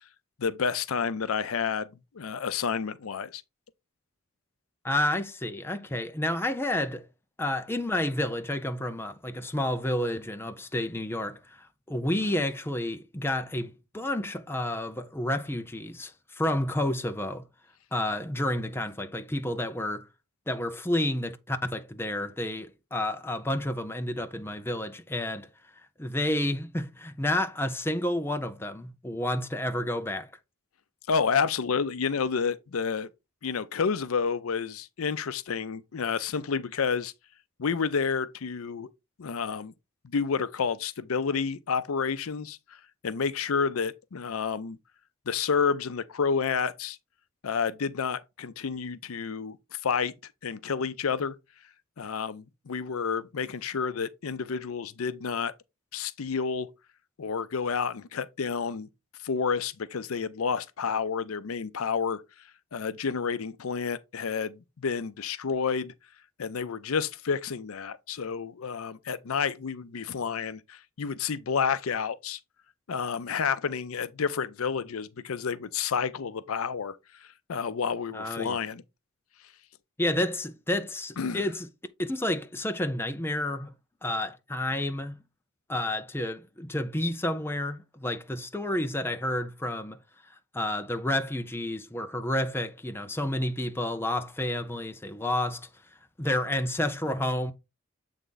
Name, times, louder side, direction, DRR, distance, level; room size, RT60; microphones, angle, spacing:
voice 1, 0.4-1.9 2.1-3.4 31.1-33.1 33.4-37.1 37.6-38.9 39.2-39.7 40.1-44.8 45.3-47.0 47.4-50.1 50.4-51.3 52.0-55.5 55.9-56.7 57.2-58.9 59.2-62.2 62.7-65.9 66.4-72.4 72.9-78.8 81.2-81.4, left 6 dB, 85° left, 0.6 m, -30 dB
voice 2, 4.8-7.0 7.4-11.6 11.9-17.4 17.9-20.1 20.5-25.5 26.0-30.3 78.1-78.6 80.0-81.7 82.0-83.7 84.0-85.2 85.7-90.0 90.5-95.7 96.2-97.5, left 1 dB, 10° left, 0.6 m, -30 dB
7.9 x 3.6 x 4.0 m
head